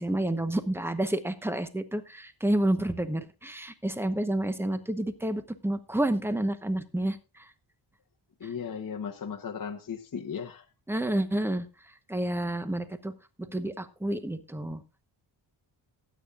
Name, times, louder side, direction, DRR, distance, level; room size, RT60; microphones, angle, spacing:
voice 1, 0.0-7.5 10.9-11.7 12.1-13.1 13.5-14.8, right 1 dB, 5° right, 10 dB, 0.9 m, -29 dB
voice 2, 8.4-10.6, left 7 dB, 40° left, 2 dB, 1.1 m, -36 dB
19.5 x 8.8 x 2.4 m, 0.28 s
wide cardioid pair, 150°, 49 cm